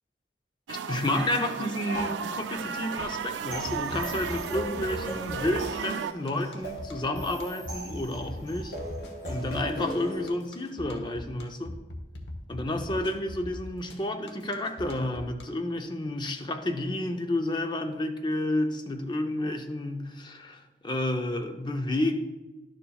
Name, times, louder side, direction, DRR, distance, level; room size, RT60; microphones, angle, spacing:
voice 1, 0.7-8.8 9.3-11.8 12.5-22.2, left 1 dB, 25° left, 5 dB, 0.6 m, -30 dB
sound 1, 0.7-6.1, right 7 dB, 85° right, 0.3 m, -34 dB
sound 2, 1.9-10.3, equal, 50° left, 2.2 m, -39 dB
sound 3, 3.7-15.4, left 1 dB, 80° left, 1.1 m, -40 dB
11.5 x 7.0 x 2.3 m, 1.1 s
head